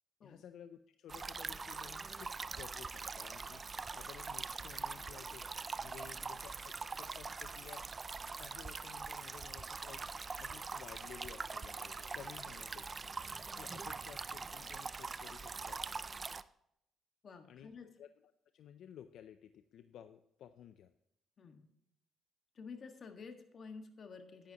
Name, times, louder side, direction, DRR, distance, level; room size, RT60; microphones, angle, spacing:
voice 1, 0.2-5.5 5.8-7.9 8.4-13.0 13.6-15.8 17.5-17.7 18.0-18.1 18.5-20.9, left 9 dB, 75° left, 10 dB, 0.5 m, -55 dB
sound 1, 1.1-16.4, right 4 dB, 35° right, 0.4 m, -43 dB
voice 2, 17.2-17.9 21.4-21.7 22.5-24.5, left 5 dB, 50° left, 6 dB, 1.6 m, -50 dB
11.0 x 10.0 x 2.9 m, 0.79 s
cardioid pair, 90°, 0 cm